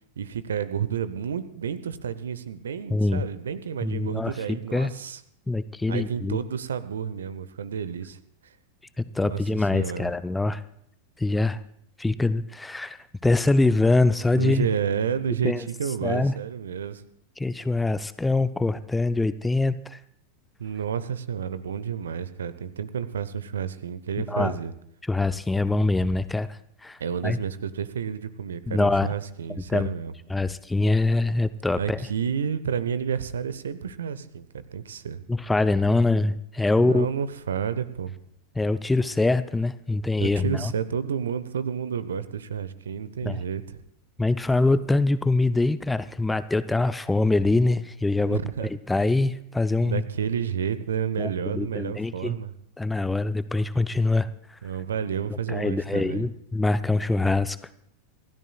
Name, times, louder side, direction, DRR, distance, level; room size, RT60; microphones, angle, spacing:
voice 1, 0.2-5.2 5.9-8.5 9.2-10.1 14.3-17.0 20.6-24.7 27.0-30.1 31.7-35.2 36.8-38.1 40.2-43.8 48.3-48.7 49.8-52.5 54.6-56.2, right 7 dB, 65° right, 15 dB, 0.8 m, -30 dB
voice 2, 2.9-3.2 3.8-4.9 5.5-6.4 9.0-10.6 11.2-11.6 12.0-13.0 13.2-14.7 15.4-15.6 16.0-16.3 17.4-20.0 24.3-24.5 25.1-26.5 26.8-27.0 27.2-27.4 28.7-29.1 29.6-29.9 30.3-32.0 35.3-37.1 38.6-40.7 43.2-43.4 44.2-50.0 51.2-52.3 52.8-54.3 55.5-57.6, left 2 dB, 5° left, 14 dB, 0.5 m, -24 dB
27.0 x 13.5 x 2.3 m, 0.71 s
figure-of-eight pair, 90°, 0 cm